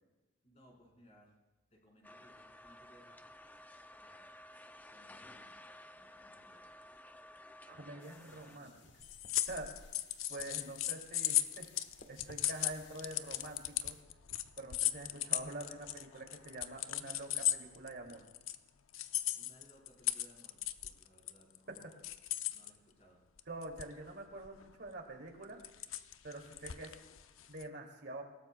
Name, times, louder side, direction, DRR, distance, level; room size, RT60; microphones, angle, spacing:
voice 1, 0.4-1.3 1.7-3.2 4.0-4.3 4.9-6.7 7.8-8.8 19.3-22.0 22.5-23.2, equal, 35° left, -2 dB, 4.3 m, -64 dB
sound 1, 2.0-8.6, left 1 dB, 10° left, 0.4 m, -55 dB
voice 2, 7.7-8.7 9.5-9.7 10.3-11.7 12.1-14.0 14.6-18.2 21.7-21.8 23.5-25.6 26.2-27.0 27.5-28.3, right 2 dB, 55° right, 2 dB, 2.5 m, -46 dB
sound 2, 8.0-14.0, left 4 dB, 60° left, 1.3 m, -61 dB
sound 3, 9.0-18.5 18.9-22.7 23.4-24.1 24.4-24.6 25.4-27.6, left 13 dB, 85° left, 0.6 m, -36 dB
28.0 x 17.5 x 2.3 m, 1.1 s
head